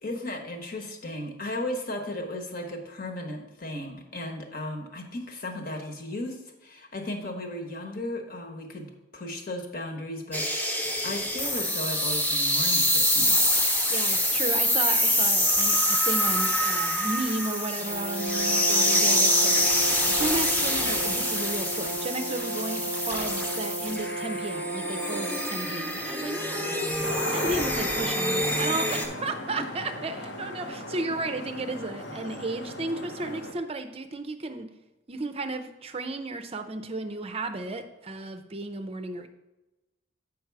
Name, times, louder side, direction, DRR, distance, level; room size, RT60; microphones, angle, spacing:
voice 1, 0.0-8.9 9.1-13.3 13.8-13.9, left 1 dB, 50° left, 3 dB, 1.2 m, -35 dB
sound 1, 10.3-29.1, equal, 10° left, 0.9 m, -26 dB
voice 2, 13.9-34.7 35.1-39.3, right 2 dB, 35° right, 9 dB, 0.5 m, -34 dB
Brass instrument, 17.8-25.5, right 2 dB, 85° left, 1.3 m, -34 dB
sound 2, 27.0-33.5, left 1 dB, 70° left, 1.0 m, -37 dB
7.7 x 5.2 x 4.7 m, 1.0 s
head